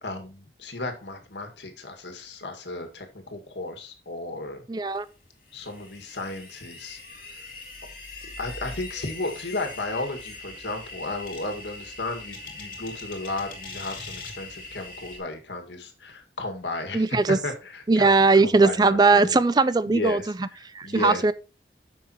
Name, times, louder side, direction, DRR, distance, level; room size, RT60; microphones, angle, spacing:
voice 1, 0.0-4.6 5.5-7.0 8.2-19.4 19.9-20.3 20.6-21.2, left 2 dB, 85° left, 1.9 m, -34 dB
voice 2, 4.7-5.1 16.9-17.4 17.9-20.5 20.7-21.3, right 3 dB, 25° right, 0.4 m, -19 dB
sound 1, 5.0-15.2, left 3 dB, 50° left, 2.5 m, -41 dB
10.5 x 7.0 x 3.0 m
head